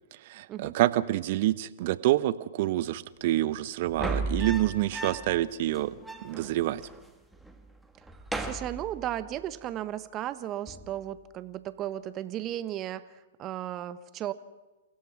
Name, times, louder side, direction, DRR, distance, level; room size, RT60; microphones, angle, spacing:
voice 1, 0.2-6.8, right 15 dB, 55° right, 15 dB, 1.0 m, -27 dB
sound 1, 3.9-5.4 5.7-5.8 6.0-7.0 7.3-7.7 8.0-9.4 10.7-11.0, right 2 dB, ahead, 1.9 m, -36 dB
voice 2, 8.4-14.3, right 12 dB, 30° right, 13 dB, 1.2 m, -35 dB
29.0 x 16.5 x 6.0 m, 1.1 s
hypercardioid pair, 125°, 0 cm